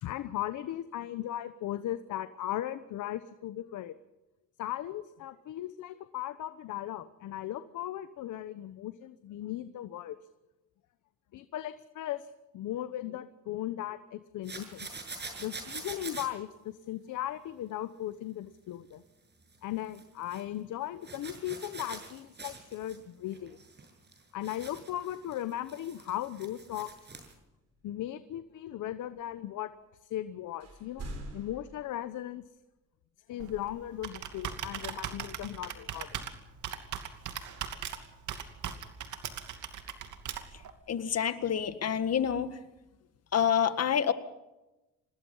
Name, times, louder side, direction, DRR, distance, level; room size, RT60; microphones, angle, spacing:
voice 1, 0.0-3.9 4.6-10.2 11.3-12.3 12.5-14.9 15.4-19.0 19.6-23.6 24.3-26.9 27.8-29.7 30.1-32.4 33.3-36.2, left 13 dB, 80° left, 12 dB, 1.1 m, -37 dB
sound 1, 14.4-16.3 19.4-19.6 19.9-20.4 21.0-23.0 23.3-27.3, right 3 dB, 35° right, 6.8 m, -45 dB
sound 2, 27.0-28.1 29.0-29.8 30.1-30.2 30.5-32.4, right 1 dB, 55° right, 7.4 m, -46 dB
Computer keyboard, 33.4-40.7, right 9 dB, 75° right, 2.7 m, -40 dB
voice 2, 40.9-42.6 43.3-44.1, left 8 dB, 55° left, 11 dB, 1.9 m, -27 dB
27.0 x 19.5 x 5.7 m, 1.0 s
cardioid pair, 90°, 30 cm